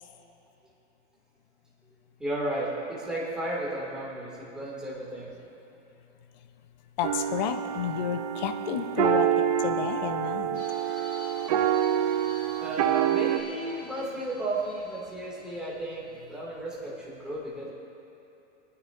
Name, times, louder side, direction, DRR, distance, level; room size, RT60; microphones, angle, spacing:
voice 1, 2.2-5.3 12.6-17.7, right 1 dB, ahead, -7 dB, 2.1 m, -34 dB
voice 2, 7.0-10.6, left 9 dB, 40° left, 8 dB, 0.6 m, -31 dB
sound 1, 7.0-13.4, right 10 dB, 35° right, 0.4 m, -27 dB
sound 2, 10.5-16.1, left 3 dB, 20° left, 2.9 m, -49 dB
24.0 x 9.6 x 2.5 m, 3.0 s
supercardioid pair, 160°, 36 cm